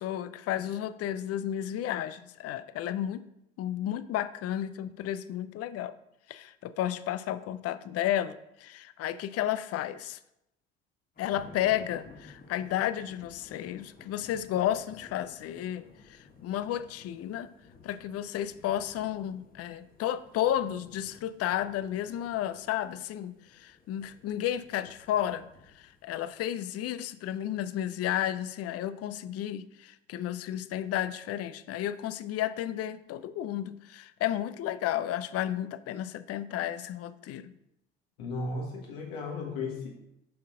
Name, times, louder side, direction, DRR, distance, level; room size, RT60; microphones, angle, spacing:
voice 1, 0.0-3.2 3.6-5.9 6.3-10.2 11.2-17.5 17.8-25.5 25.7-37.5, left 11 dB, 50° left, 14 dB, 0.5 m, -32 dB
sound 1, 11.2-26.5, left 3 dB, 30° left, 1.2 m, -55 dB
voice 2, 38.2-39.9, left 3 dB, 75° left, -1 dB, 1.8 m, -35 dB
5.7 x 5.7 x 3.7 m, 0.82 s
hypercardioid pair, 55°, 31 cm